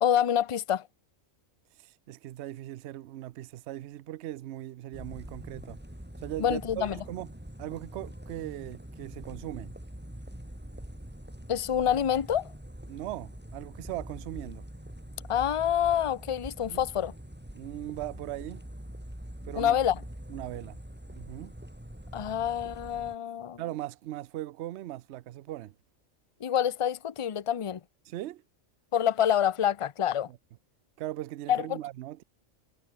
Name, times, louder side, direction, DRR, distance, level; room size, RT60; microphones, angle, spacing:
voice 1, 0.0-0.9 6.4-7.0 11.5-12.5 15.3-17.1 19.5-20.0 22.1-23.6 26.4-27.8 28.9-30.3 31.5-31.8, left 9 dB, 35° left, 0.5 m, -27 dB
voice 2, 1.8-5.8 6.2-7.3 7.6-9.7 12.9-14.7 16.6-16.8 17.5-18.7 19.4-19.8 20.3-20.8 21.1-21.6 23.6-25.7 28.0-28.4 30.3-30.4 31.0-32.2, right 14 dB, 65° right, 0.8 m, -39 dB
sound 1, 4.9-23.2, equal, 5° right, 3.1 m, -44 dB
omnidirectional pair, 1.4 m